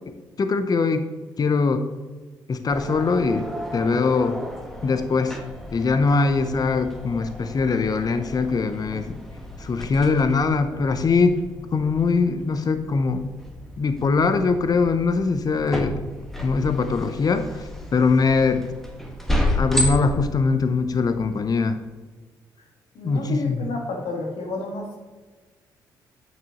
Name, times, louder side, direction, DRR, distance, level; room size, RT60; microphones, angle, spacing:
voice 1, 0.4-1.1 1.4-1.8 2.5-3.4 3.7-4.4 4.8-5.4 5.7-9.2 9.6-11.4 11.7-13.3 13.8-16.0 16.4-17.5 17.9-18.6 19.6-21.8 23.0-23.6, left 4 dB, 40° left, 10 dB, 0.6 m, -22 dB
sound 1, 2.7-21.6, left 1 dB, 5° left, 1.5 m, -32 dB
voice 2, 22.9-25.0, left 2 dB, 70° left, 0 dB, 1.9 m, -30 dB
8.7 x 6.2 x 3.0 m, 1.3 s
hypercardioid pair, 45°, 10 cm